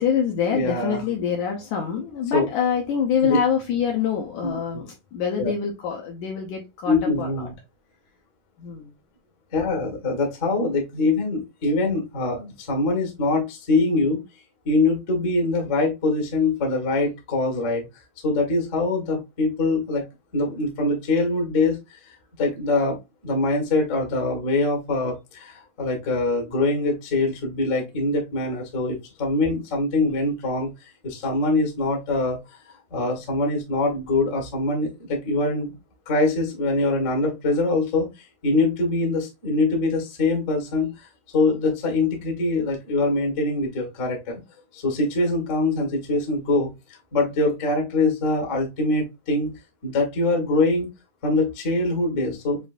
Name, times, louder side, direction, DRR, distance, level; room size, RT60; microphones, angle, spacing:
voice 1, 0.0-7.5 8.6-8.9, left 7 dB, 75° left, 1.9 m, -25 dB
voice 2, 0.5-1.0 2.3-2.5 3.2-3.4 4.4-4.5 5.3-5.5 6.9-7.5 9.5-14.2 14.6-17.9 18.2-20.1 20.3-22.0 22.4-23.0 23.2-30.7 31.0-35.7 36.0-38.1 38.4-44.4 44.7-46.7 47.1-50.9 51.2-52.6, left 2 dB, 50° left, 0.9 m, -23 dB
7.2 x 2.6 x 2.5 m
omnidirectional pair, 4.2 m